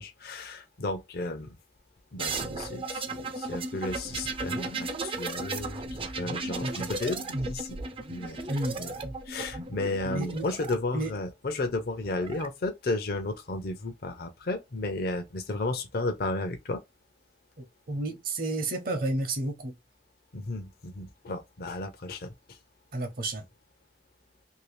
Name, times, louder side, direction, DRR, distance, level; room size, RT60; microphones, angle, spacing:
voice 1, 0.0-1.5 2.1-7.8 8.1-8.4 8.8-8.9 9.3-16.8 20.3-22.6, left 2 dB, 60° left, 0.6 m, -33 dB
sound 1, 2.2-10.7 11.8-12.5, right 3 dB, 30° right, 0.4 m, -35 dB
voice 2, 8.5-8.8 10.0-10.5 10.9-11.2 17.9-19.7 22.9-23.5, right 2 dB, 55° right, 0.8 m, -31 dB
2.8 x 2.8 x 3.2 m
head